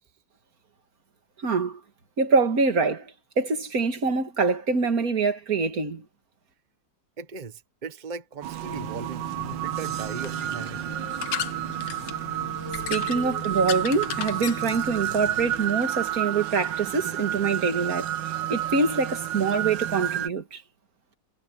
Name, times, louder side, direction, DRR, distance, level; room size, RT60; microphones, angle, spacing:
voice 1, 1.4-1.8 2.2-3.1 3.4-6.0 12.9-20.6, right 4 dB, 55° right, 2.3 m, -25 dB
voice 2, 7.2-10.9, right 5 dB, 25° right, 1.4 m, -38 dB
sound 1, 8.4-20.3, right 12 dB, 90° right, 1.5 m, -31 dB
sound 2, 8.7-15.6, left 9 dB, 75° left, 1.8 m, -37 dB
omnidirectional pair, 1.9 m